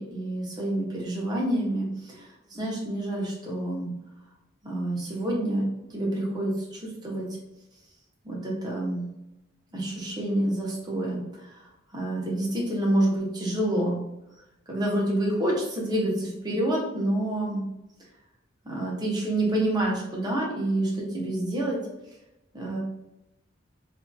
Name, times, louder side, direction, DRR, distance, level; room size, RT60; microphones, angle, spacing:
voice 1, 0.0-3.9 4.6-7.3 8.2-9.1 9.7-11.2 11.9-14.0 14.7-17.6 18.6-21.8 22.5-22.8, right 1 dB, 20° right, -4 dB, 0.8 m, -28 dB
2.7 x 2.5 x 2.2 m, 0.91 s
head